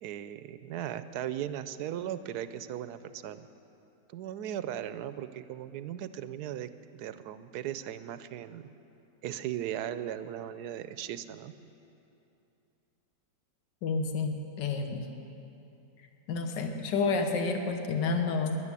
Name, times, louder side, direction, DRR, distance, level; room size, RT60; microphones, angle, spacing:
voice 1, 0.0-3.5 4.1-8.6 9.2-11.5, right 11 dB, 70° right, 12 dB, 1.1 m, -37 dB
voice 2, 13.8-15.1 16.3-18.6, left 4 dB, 80° left, 5 dB, 1.7 m, -30 dB
12.5 x 11.0 x 9.7 m, 2.8 s
omnidirectional pair, 1.9 m